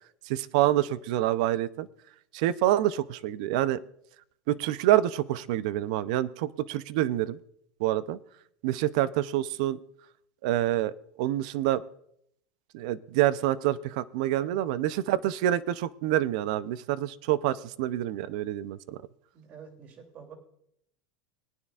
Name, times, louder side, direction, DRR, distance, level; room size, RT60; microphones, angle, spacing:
voice 1, 0.3-1.9 2.3-3.8 4.5-7.4 7.8-8.2 8.6-9.8 10.4-10.9 11.2-11.8 12.7-19.0, right 13 dB, 70° right, 17 dB, 0.5 m, -27 dB
voice 2, 19.3-20.3, right 7 dB, 40° right, 2 dB, 2.8 m, -48 dB
21.0 x 9.8 x 2.4 m, 0.73 s
supercardioid pair, 120°, 4 cm